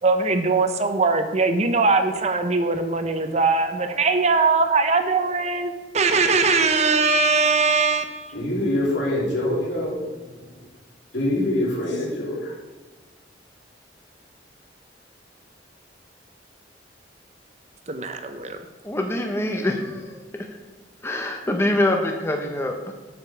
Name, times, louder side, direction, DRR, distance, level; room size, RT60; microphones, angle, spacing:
voice 1, 0.0-8.3 17.9-18.6, right 4 dB, 40° right, 7 dB, 0.7 m, -21 dB
voice 2, 8.3-10.1 10.5-10.7 11.1-12.6, left 1 dB, 80° left, -3 dB, 2.8 m, -25 dB
voice 3, 18.8-20.2 21.0-22.9, left 1 dB, 15° left, 3 dB, 0.7 m, -24 dB
8.0 x 5.2 x 7.1 m, 1.3 s
head